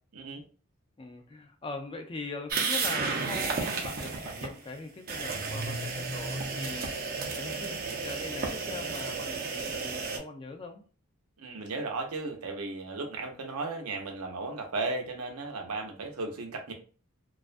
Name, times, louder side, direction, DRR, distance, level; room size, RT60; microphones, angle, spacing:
voice 1, 0.1-0.4 11.4-16.7, right 3 dB, 90° right, 3 dB, 0.6 m, -35 dB
voice 2, 1.0-7.0 7.3-10.8, left 3 dB, 25° left, 5 dB, 0.4 m, -41 dB
sound 1, 2.5-4.5 5.1-10.2, right 4 dB, 45° right, 0.5 m, -32 dB
2.3 x 2.2 x 2.4 m, 0.38 s
head